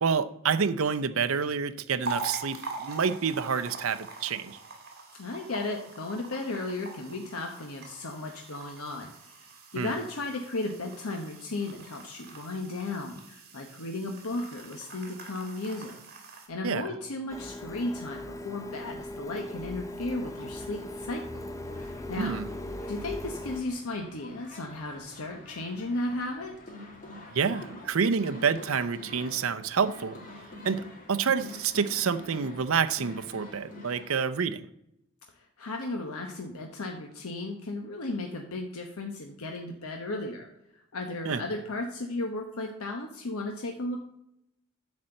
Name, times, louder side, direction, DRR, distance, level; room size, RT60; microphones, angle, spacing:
voice 1, 0.0-4.6 9.7-9.9 16.6-16.9 22.2-22.5 27.3-30.2 30.6-30.8 31.1-34.7 41.3-41.4, right 6 dB, 70° right, 10 dB, 0.6 m, -28 dB
sound 1, 2.0-16.5, right 3 dB, 50° right, 2.6 m, -43 dB
voice 2, 5.2-16.0 16.5-21.5 21.8-22.4 22.9-26.6 35.4-44.0, left 2 dB, 80° left, 2 dB, 1.0 m, -35 dB
Printer, 17.3-23.6, left 1 dB, 15° left, 0.6 m, -39 dB
sound 2, 20.2-34.3, left 1 dB, 40° left, 2.0 m, -47 dB
10.5 x 4.3 x 7.7 m, 0.80 s
head